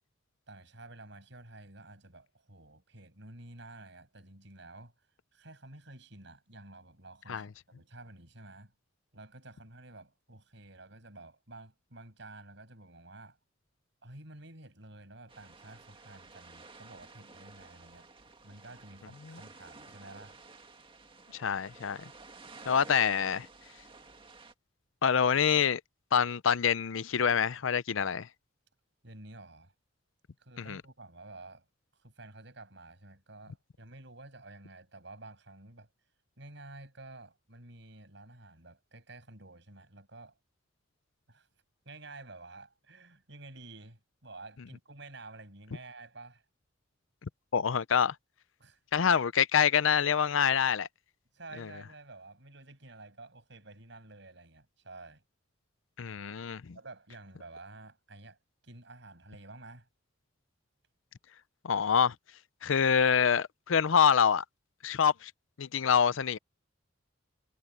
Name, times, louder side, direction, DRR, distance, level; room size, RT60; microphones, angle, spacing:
voice 1, 0.5-4.9 5.3-8.7 9.1-13.4 14.0-18.1 18.4-20.4 29.0-29.7 30.4-31.7 31.9-35.9 36.4-40.4 41.3-41.5 41.8-46.4 48.6-48.8 51.3-55.2 56.7-58.4 58.6-59.9, right 2 dB, 60° right, 7.1 m, -51 dB
sound 1, 15.3-24.5, right 3 dB, 25° right, 2.0 m, -53 dB
voice 2, 21.3-22.0 22.7-23.5 25.0-25.8 26.1-28.3 30.7-30.8 47.2-48.1 48.9-50.9 51.6-51.7 56.0-56.8 61.6-62.1 62.6-64.4 64.8-65.3 65.6-66.4, left 7 dB, 80° left, 0.6 m, -26 dB
head